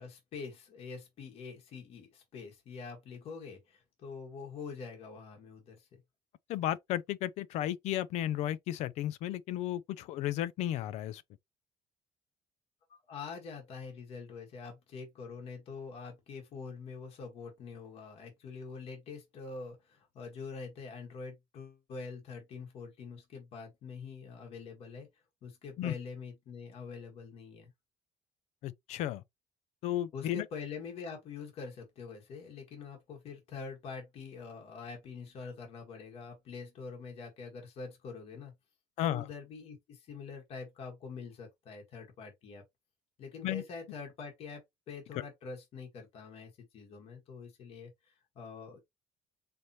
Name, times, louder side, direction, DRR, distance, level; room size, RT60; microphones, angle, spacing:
voice 1, 0.0-6.0 12.9-27.7 30.1-38.5 39.0-42.6 43.2-48.8, left 5 dB, 60° left, 1.5 m, -45 dB
voice 2, 6.5-11.2 25.8-25.9 28.6-29.2 29.8-30.4 39.0-39.3 43.4-43.6, left 12 dB, 75° left, 0.5 m, -33 dB
4.1 x 3.3 x 2.9 m
cardioid pair, 140°, 12 cm